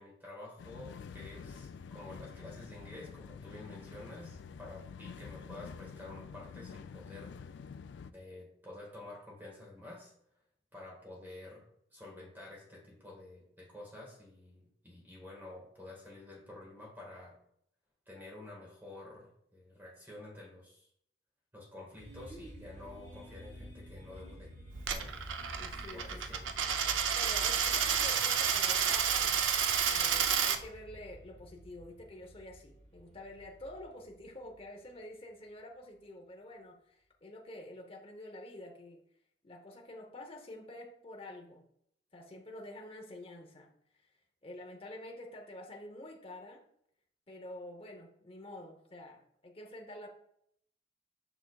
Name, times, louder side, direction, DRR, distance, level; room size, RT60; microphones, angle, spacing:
voice 1, 0.0-7.5 8.0-10.1 10.7-11.6 11.9-17.4 18.1-20.9 21.5-24.5 24.9-25.1 25.9-26.5, left 2 dB, 10° right, -3 dB, 1.6 m, -50 dB
sound 1, 0.6-8.1, left 6 dB, 65° left, 0.3 m, -48 dB
sound 2, 22.0-34.9, right 1 dB, 35° right, 1.6 m, -49 dB
Coin (dropping), 24.8-30.6, right 7 dB, 80° right, 0.5 m, -30 dB
voice 2, 25.5-26.3 27.1-29.4 29.9-39.0 39.4-41.6 42.1-43.7 44.4-46.6 47.3-50.1, left 1 dB, 30° left, 1 dB, 0.8 m, -48 dB
6.9 x 5.9 x 2.3 m, 0.71 s
head